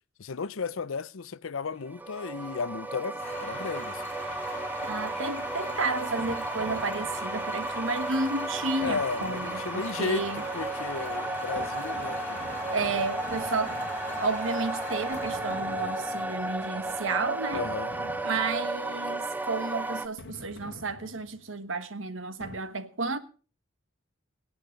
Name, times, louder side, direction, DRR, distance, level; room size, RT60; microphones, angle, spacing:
voice 1, 0.2-4.0 4.8-5.0 8.8-12.9 17.5-17.9, left 5 dB, 80° left, 0.6 m, -34 dB
sound 1, 1.9-20.1, right 2 dB, 10° right, 0.7 m, -34 dB
sound 2, 3.2-18.1, left 1 dB, 10° left, 3.5 m, -41 dB
voice 2, 4.8-10.4 12.7-13.8 14.2-17.7 18.2-23.2, right 3 dB, 70° right, 1.3 m, -32 dB
sound 3, 6.2-7.6 8.8-10.1 11.6-14.6 15.1-16.6 17.5-18.9 20.2-21.6 22.4-22.6, left 1 dB, 55° left, 1.3 m, -47 dB
22.5 x 8.7 x 5.1 m
head